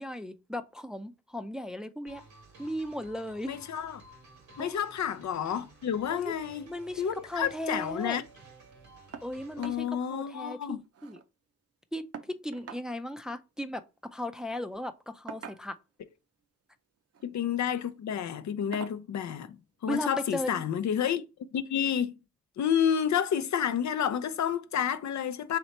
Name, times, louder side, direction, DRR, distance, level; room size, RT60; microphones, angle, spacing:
voice 1, 0.0-2.2 2.6-3.6 4.6-4.8 6.1-6.3 6.7-8.2 9.2-10.8 11.0-11.2 11.9-12.0 12.4-13.8 14.1-15.8 19.9-20.6, left 1 dB, ahead, 0.4 m, -36 dB
sound 1, 2.1-9.8, right 2 dB, 85° right, 1.4 m, -54 dB
voice 2, 3.4-4.0 4.6-6.7 7.0-8.2 9.6-10.8 17.2-19.6 19.8-21.2 21.5-22.2 22.6-25.6, left 8 dB, 70° left, 0.5 m, -30 dB
sound 2, 9.1-9.3 9.6-9.8 10.2-10.3 10.6-11.3 12.1-12.9 14.1-14.3 15.3-15.9 17.0-17.3 17.8-17.9 18.7-19.0 20.3-20.4 20.9-21.0, right 7 dB, 55° right, 0.6 m, -45 dB
3.2 x 3.0 x 4.1 m
cardioid pair, 50°, 30 cm